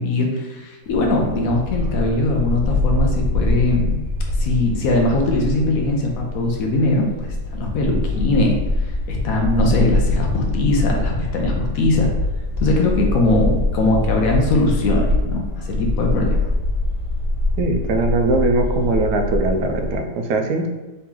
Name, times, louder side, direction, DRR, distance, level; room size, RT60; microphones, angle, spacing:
voice 1, 0.0-3.9 4.3-8.6 9.1-12.1 12.6-16.4, left 2 dB, 65° left, 0 dB, 1.1 m, -20 dB
Bark, 0.8-20.0, left 2 dB, 30° right, 1.4 m, -23 dB
voice 2, 17.6-20.7, right 2 dB, 85° right, 5 dB, 1.2 m, -20 dB
4.0 x 3.0 x 3.6 m, 1.2 s
omnidirectional pair, 1.7 m